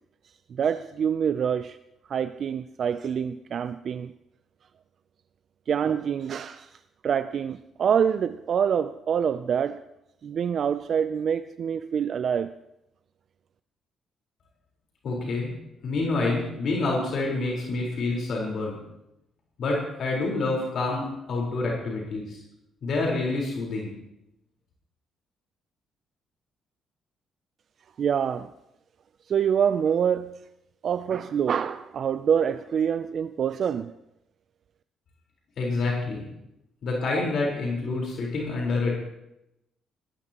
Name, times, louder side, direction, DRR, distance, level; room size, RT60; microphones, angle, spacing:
voice 1, 0.5-1.8 2.1-4.1 5.7-6.8 7.0-9.8 10.2-12.5 28.0-28.5 29.3-30.3 30.8-33.9, right 8 dB, 60° right, 0.4 m, -26 dB
voice 2, 15.0-15.5 15.8-18.8 19.6-22.4 22.8-23.9 35.6-36.2 36.8-38.9, left 3 dB, 65° left, 4.3 m, -27 dB
20.5 x 15.0 x 3.0 m
cardioid pair, 90°, 0 cm